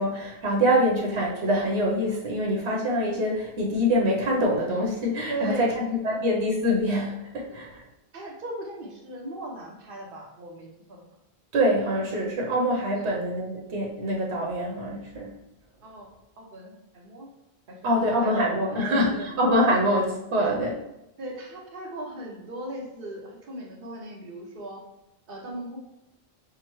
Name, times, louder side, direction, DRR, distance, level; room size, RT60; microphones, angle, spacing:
voice 1, 0.0-7.8 11.5-15.3 17.8-20.0 20.3-20.7, equal, 85° right, -2 dB, 1.1 m, -25 dB
voice 2, 5.3-6.2 8.1-11.1 12.9-13.2 15.8-16.1 16.4-17.3 17.7-19.3 19.7-19.8 20.4-20.5 21.2-24.8 25.3-25.8, right 1 dB, 60° right, 0 dB, 1.0 m, -37 dB
6.0 x 2.1 x 3.0 m, 0.90 s
omnidirectional pair, 1.1 m